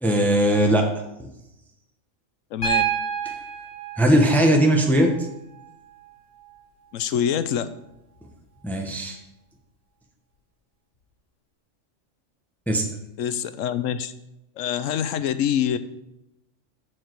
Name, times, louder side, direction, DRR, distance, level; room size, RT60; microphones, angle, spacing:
voice 1, 0.0-0.9 3.2-3.3 4.0-5.1 8.6-9.2 12.7-12.8, right 1 dB, ahead, 2 dB, 1.0 m, -19 dB
voice 2, 2.5-2.9 6.9-7.7 13.2-14.1 14.6-15.8, left 9 dB, 90° left, 12 dB, 1.0 m, -25 dB
Piano, 2.6-6.6 8.2-8.3, right 8 dB, 50° left, 4.0 m, -30 dB
14.0 x 4.8 x 4.6 m, 0.90 s
omnidirectional pair, 1.3 m